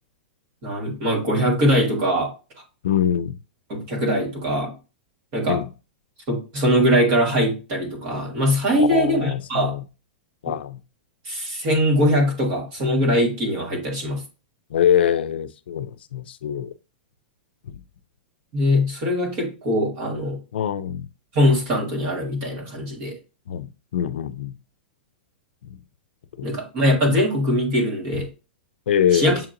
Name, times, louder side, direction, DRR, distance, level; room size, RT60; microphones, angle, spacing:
voice 1, 0.6-2.3 3.7-4.7 5.3-5.6 6.3-9.8 10.5-10.6 11.2-14.2 18.5-20.4 21.3-23.1 26.4-28.3 29.1-29.4, equal, 30° right, 1.5 m, -21 dB
voice 2, 2.8-3.4 5.5-5.7 8.7-9.8 10.4-10.8 14.7-16.7 17.7-17.8 20.5-21.1 23.5-24.6 25.6-25.8 26.4-26.5 28.9-29.4, left 9 dB, 80° left, 0.4 m, -24 dB
7.0 x 2.9 x 2.5 m
supercardioid pair, 170°, 6 cm